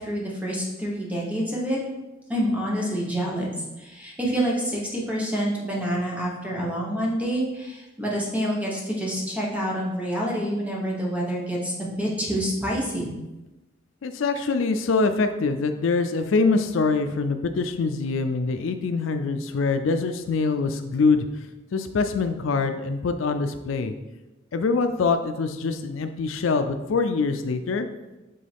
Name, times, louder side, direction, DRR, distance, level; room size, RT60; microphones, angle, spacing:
voice 1, 0.0-1.8 2.3-13.1, equal, 10° right, -4 dB, 1.3 m, -27 dB
voice 2, 14.0-21.3 21.7-23.9 24.5-27.9, left 4 dB, 75° left, 8 dB, 0.4 m, -24 dB
7.7 x 3.8 x 3.5 m, 1.1 s
head